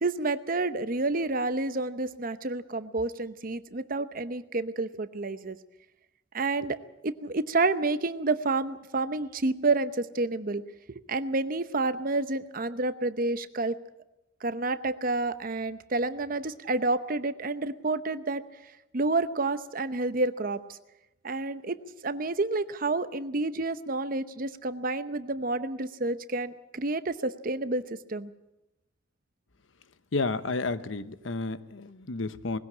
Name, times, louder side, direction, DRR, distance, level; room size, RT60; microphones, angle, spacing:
voice 1, 0.0-5.6 6.3-6.8 7.0-10.6 10.9-13.8 14.4-20.8 21.2-28.3, right 3 dB, 45° right, 12 dB, 0.9 m, -29 dB
voice 2, 30.1-32.6, left 3 dB, 80° left, 13 dB, 0.9 m, -31 dB
20.0 x 16.0 x 8.5 m, 0.94 s
head